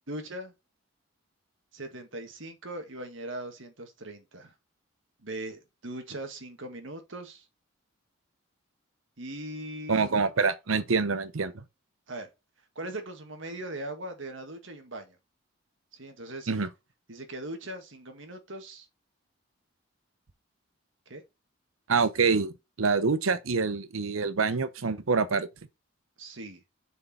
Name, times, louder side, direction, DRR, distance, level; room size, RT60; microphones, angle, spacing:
voice 1, 0.1-0.5 1.7-4.5 5.2-7.5 9.2-10.1 12.1-12.3 12.8-15.2 15.9-16.5 17.1-18.9 21.1-21.2 26.2-26.6, right 1 dB, 70° right, 1.7 m, -40 dB
voice 2, 9.9-11.6 16.5-16.7 21.9-25.5, right 4 dB, 90° right, 0.8 m, -26 dB
6.6 x 4.6 x 4.2 m
head